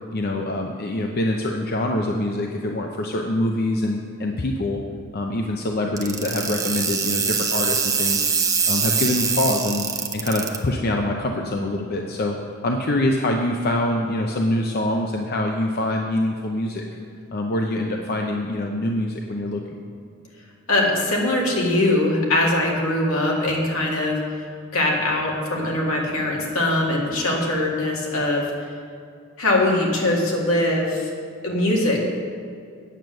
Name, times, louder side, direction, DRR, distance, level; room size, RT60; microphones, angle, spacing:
voice 1, 0.1-4.8 5.1-8.3 8.7-9.9 10.1-12.4 12.6-16.8 17.3-19.8, left 1 dB, 45° left, 1 dB, 0.6 m, -24 dB
sound 1, 6.0-10.6, right 6 dB, 15° right, 0.6 m, -23 dB
voice 2, 20.7-24.2 24.7-28.4 29.4-31.1 31.4-32.0, left 1 dB, 75° left, -2 dB, 2.1 m, -21 dB
8.9 x 7.8 x 6.3 m, 2.3 s
head